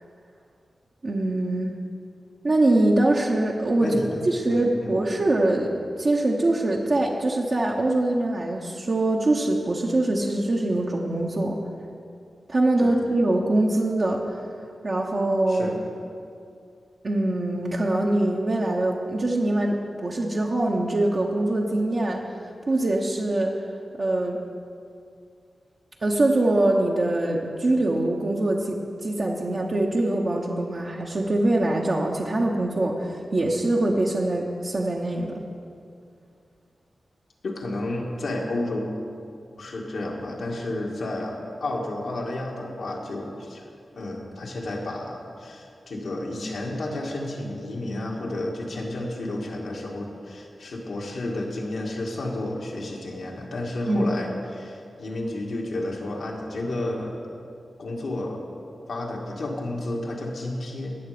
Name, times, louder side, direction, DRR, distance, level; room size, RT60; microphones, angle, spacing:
voice 1, 1.0-1.7 2.4-5.7 6.0-11.6 12.5-14.4 14.8-15.8 17.0-22.2 22.7-23.5 24.0-24.4 26.0-35.4 53.9-54.1, right 2 dB, 55° right, -3 dB, 1.1 m, -23 dB
voice 2, 3.8-5.0 12.8-13.1 15.5-15.8 37.4-38.9 39.6-43.6 43.9-57.2 57.8-58.4 58.9-61.0, left 1 dB, 80° left, -1 dB, 1.9 m, -31 dB
18.0 x 6.7 x 5.1 m, 2.4 s
cardioid pair, 60°, 0 cm